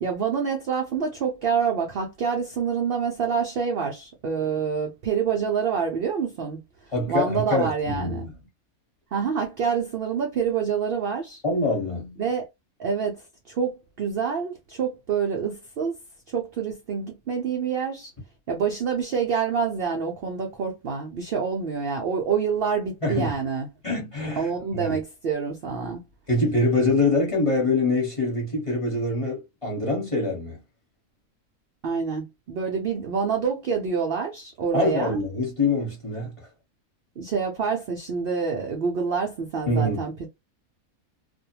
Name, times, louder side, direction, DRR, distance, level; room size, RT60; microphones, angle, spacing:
voice 1, 0.0-6.6 7.1-8.3 9.1-11.4 12.2-12.5 12.8-15.9 16.3-18.1 18.5-23.7 24.4-26.0 31.8-35.2 37.2-40.3, right 6 dB, 70° right, 0.5 m, -27 dB
voice 2, 6.9-8.2 11.4-12.2 23.0-23.3 23.8-25.0 26.3-30.6 34.7-36.3 39.7-40.0, left 2 dB, 25° left, 1.0 m, -24 dB
2.5 x 2.1 x 2.8 m
omnidirectional pair, 1.5 m